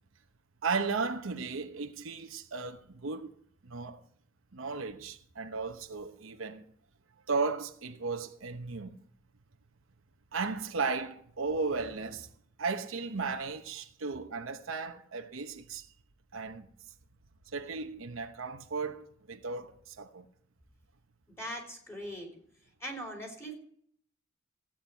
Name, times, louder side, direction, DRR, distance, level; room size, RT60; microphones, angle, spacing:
voice 1, 0.6-3.3 3.6-4.0 4.5-6.6 7.3-9.0 10.3-12.3 12.6-15.9 16.3-16.7 17.5-20.3, right 4 dB, 80° right, 0.9 m, -35 dB
voice 2, 21.4-22.4 22.8-23.5, equal, 15° left, 3.3 m, -40 dB
15.5 x 8.8 x 4.5 m
head